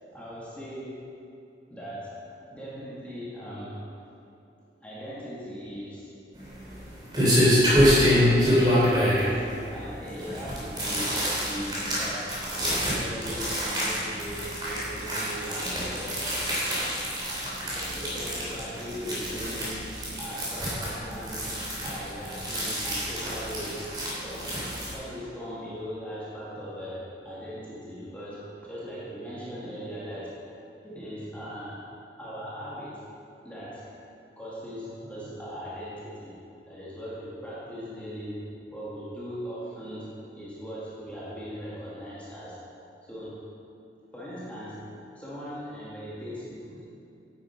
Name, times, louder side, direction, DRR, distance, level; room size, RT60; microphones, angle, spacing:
voice 1, 0.1-1.2 1.7-4.1 4.8-6.5 8.5-16.2 17.4-19.8 20.2-21.5 21.8-23.9 24.2-24.7 24.9-30.4 30.8-31.9 32.2-33.1 33.4-33.9 34.4-42.6 43.0-43.4 44.1-46.8, equal, 10° left, -9 dB, 2.0 m, -39 dB
sound 1, 6.4-24.9, equal, 25° right, 3.0 m, -26 dB
10.5 x 8.9 x 5.1 m, 2.7 s
head